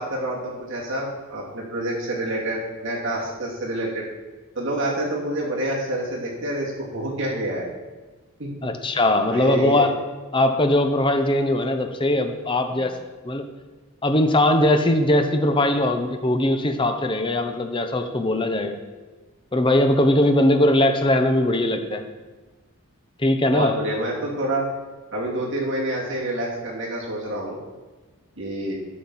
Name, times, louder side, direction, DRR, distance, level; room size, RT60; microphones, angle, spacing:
voice 1, 0.0-4.0 4.5-7.7 8.4-8.7 9.3-9.9 23.5-24.7 25.1-27.6 28.4-28.8, right 1 dB, 55° right, -4 dB, 2.6 m, -27 dB
voice 2, 8.6-9.9 10.3-13.0 13.2-13.4 14.0-18.8 19.5-22.0 23.2-23.7, left 1 dB, 20° left, 6 dB, 0.7 m, -20 dB
12.0 x 6.4 x 4.2 m, 1.3 s
head